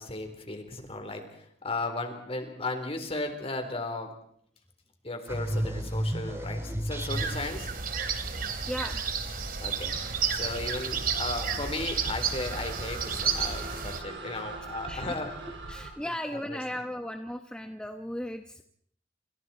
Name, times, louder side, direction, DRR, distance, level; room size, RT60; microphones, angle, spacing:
voice 1, 0.0-4.1 5.0-7.9 9.3-10.0 10.3-15.6 16.0-16.8, left 2 dB, 35° left, 5 dB, 4.1 m, -36 dB
sound 1, 5.3-7.6, equal, 15° right, 2.5 m, -32 dB
sound 2, 7.1-14.0, right 6 dB, 55° right, 2.7 m, -31 dB
voice 2, 8.7-9.0 14.9-15.2 15.7-18.6, equal, 5° left, 5 dB, 1.0 m, -36 dB
sound 3, 9.9-15.9, right 3 dB, 70° right, 4.6 m, -42 dB
28.0 x 27.5 x 4.5 m, 0.66 s
head